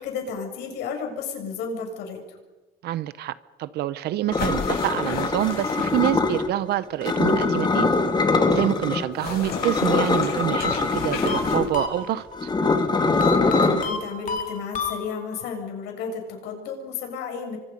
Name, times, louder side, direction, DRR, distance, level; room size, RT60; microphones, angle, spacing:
voice 1, 0.0-2.4 13.5-17.6, left 5 dB, 85° left, 3 dB, 7.0 m, -33 dB
voice 2, 2.8-7.9 8.5-12.5, right 13 dB, 75° right, 15 dB, 0.9 m, -27 dB
sound 1, 4.3-6.5 7.0-9.0 9.4-13.8, left 3 dB, 25° left, 2.8 m, -23 dB
sound 2, 4.4-6.3 9.1-11.7, left 5 dB, 65° left, 8.0 m, -33 dB
sound 3, 10.6-12.4 13.2-15.5, left 4 dB, 50° left, 3.3 m, -30 dB
30.0 x 25.0 x 5.4 m, 1.2 s
cardioid pair, 110°, 17 cm